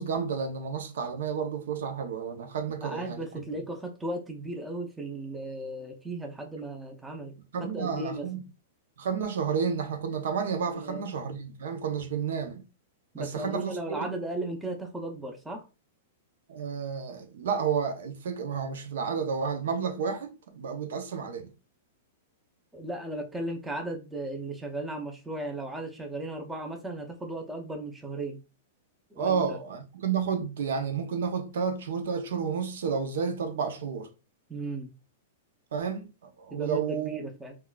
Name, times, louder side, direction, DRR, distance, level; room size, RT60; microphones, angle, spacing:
voice 1, 0.0-3.3 7.5-8.5 9.0-12.6 13.2-14.1 16.5-21.5 29.2-34.1 35.7-36.1 36.4-37.2, right 6 dB, 75° right, 0.6 m, -31 dB
voice 2, 2.8-7.3 7.6-8.3 10.7-11.1 13.1-15.7 22.7-28.4 29.1-29.4 34.5-34.9 36.5-37.6, right 1 dB, 10° right, 0.5 m, -36 dB
3.6 x 2.3 x 2.3 m
hypercardioid pair, 140°, 0 cm